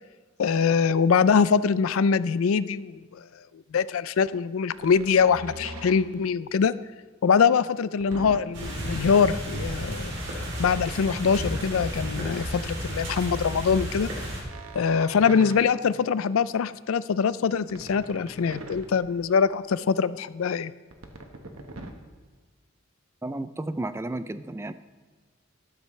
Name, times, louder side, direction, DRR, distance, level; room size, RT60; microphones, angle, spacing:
voice 1, 0.4-3.2 3.5-6.7 7.2-10.1 10.6-14.1 14.7-20.7, left 6 dB, 75° left, 17 dB, 0.4 m, -23 dB
sound 1, 4.7-6.3 8.0-9.4 11.2-12.7 14.4-16.3 17.6-19.4 20.9-21.9, right 2 dB, 80° right, 1.3 m, -43 dB
sound 2, 8.5-14.4, equal, 60° right, 3.1 m, -33 dB
voice 2, 23.2-24.7, right 2 dB, 10° right, 13 dB, 0.3 m, -32 dB
13.0 x 12.5 x 3.2 m, 1.4 s
head